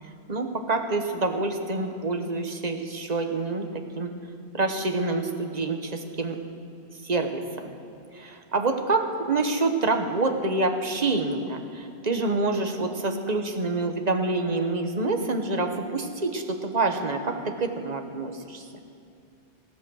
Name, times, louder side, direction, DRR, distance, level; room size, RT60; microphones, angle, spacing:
voice 1, 0.3-4.1 4.5-6.4 7.0-7.7 8.1-18.6, right 3 dB, 40° right, 5 dB, 1.2 m, -27 dB
16.0 x 13.5 x 6.3 m, 2.5 s
omnidirectional pair, 1.2 m